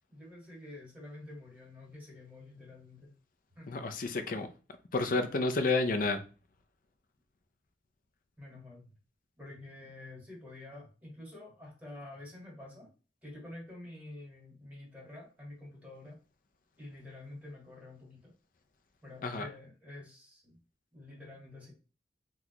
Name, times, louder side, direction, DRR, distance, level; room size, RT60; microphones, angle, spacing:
voice 1, 0.1-3.1 3.5-3.8 8.4-8.9 9.4-12.9 13.2-16.2 16.8-18.3 19.0-20.6 20.9-21.7, left 2 dB, 10° right, -3 dB, 1.7 m, -48 dB
voice 2, 3.7-4.5 4.9-6.2 19.2-19.4, left 3 dB, 50° left, 8 dB, 0.5 m, -30 dB
4.0 x 2.3 x 2.9 m, 0.35 s
head